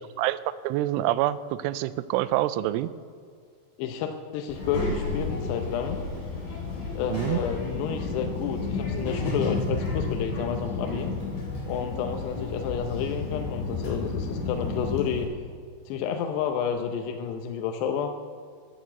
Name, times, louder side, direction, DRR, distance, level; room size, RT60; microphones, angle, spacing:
voice 1, 0.6-2.9 7.1-7.4, right 14 dB, 85° right, 15 dB, 2.9 m, -26 dB
voice 2, 3.8-6.0 6.9-11.1 11.7-15.3 15.9-18.1, left 8 dB, 80° left, 5 dB, 2.5 m, -30 dB
Child speech kid speaking, 4.5-15.3, left 3 dB, 50° left, 5.9 m, -31 dB
14.0 x 10.5 x 8.2 m, 2.2 s
omnidirectional pair, 5.7 m